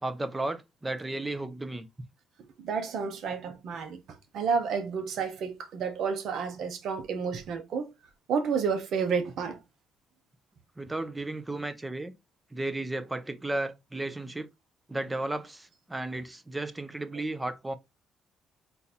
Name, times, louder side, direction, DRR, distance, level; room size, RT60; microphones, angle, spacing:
voice 1, 0.0-1.8 10.8-12.1 12.5-14.5 14.9-17.8, right 2 dB, 15° right, 0.7 m, -34 dB
voice 2, 2.6-4.0 4.3-7.9 8.3-9.6, right 6 dB, 70° right, 1.1 m, -30 dB
4.1 x 2.8 x 4.1 m
cardioid pair, 95°, 0 cm